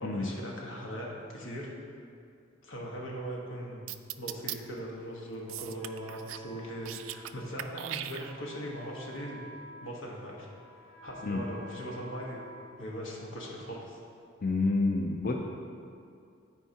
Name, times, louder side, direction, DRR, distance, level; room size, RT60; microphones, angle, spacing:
voice 1, 0.0-1.7 2.6-3.8 4.2-9.4 9.8-10.5 11.0-12.5 12.8-14.0, equal, 90° left, -3 dB, 1.4 m, -40 dB
sound 1, 3.9-4.6 5.5-6.5 6.7-7.3 7.6-8.6, right 12 dB, 90° right, 0.3 m, -39 dB
Wind instrument woodwind instrument, 5.8-13.5, left 1 dB, 5° left, 0.8 m, -52 dB
voice 2, 14.4-15.3, left 3 dB, 50° left, 0 dB, 0.5 m, -28 dB
13.0 x 4.6 x 2.8 m, 2.4 s
head